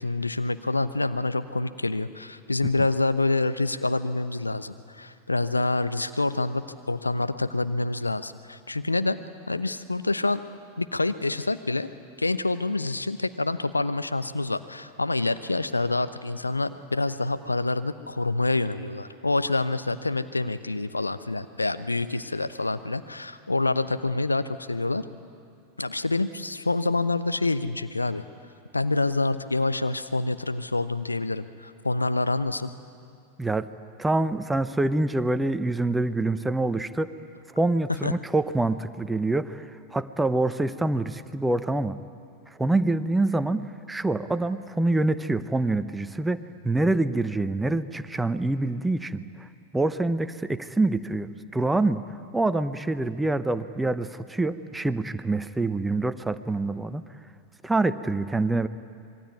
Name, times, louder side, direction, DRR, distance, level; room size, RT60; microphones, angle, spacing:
voice 1, 0.0-9.2 9.5-10.4 10.8-11.9 12.2-25.0 25.8-28.2 28.7-32.7 38.0-38.1, left 2 dB, 80° left, 12 dB, 0.9 m, -27 dB
voice 2, 33.4-33.7 34.0-37.1 37.5-42.0 42.5-49.5 49.7-52.0 52.3-57.0 57.6-58.7, right 2 dB, 10° right, 12 dB, 0.9 m, -26 dB
26.0 x 22.0 x 9.5 m, 2.4 s
figure-of-eight pair, 90°, 0 cm